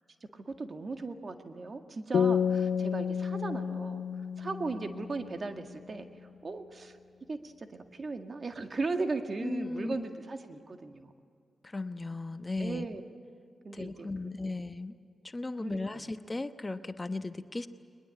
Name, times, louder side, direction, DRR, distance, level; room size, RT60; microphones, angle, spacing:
voice 1, 0.3-4.1 4.4-6.1 6.4-7.0 7.3-11.1 12.6-13.0 13.6-14.6 15.6-16.1, right 3 dB, 50° right, 6 dB, 1.9 m, -37 dB
sound 1, 2.1-5.6, left 7 dB, 70° left, 0.5 m, -30 dB
voice 2, 9.4-10.1 11.6-12.9 13.7-15.0 15.2-17.7, left 2 dB, 30° left, 10 dB, 1.1 m, -36 dB
21.5 x 21.0 x 8.4 m, 2.4 s
supercardioid pair, 45°, 0 cm